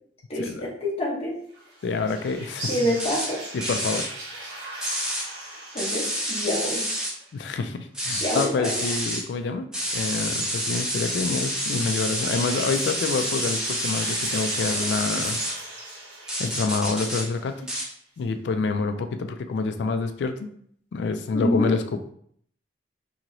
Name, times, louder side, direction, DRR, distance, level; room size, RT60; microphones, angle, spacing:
voice 1, 0.3-1.4 2.7-3.4 5.7-6.8 8.1-8.8 21.3-21.7, left 1 dB, 35° left, -5 dB, 0.7 m, -27 dB
sound 1, 1.5-7.5 11.0-17.9, right 1 dB, 80° right, 1.3 m, -39 dB
voice 2, 1.8-2.7 3.5-4.1 7.3-9.7 9.9-15.4 16.4-17.5 18.2-20.5 20.9-22.0, left 4 dB, 70° left, 8 dB, 0.3 m, -27 dB
sound 2, 3.0-3.3 3.6-4.1 4.8-5.2 5.8-7.1 7.9-9.2 9.7-15.5 16.3-17.2 17.7-17.9, equal, 5° right, 0.6 m, -28 dB
2.9 x 2.8 x 2.5 m, 0.64 s
head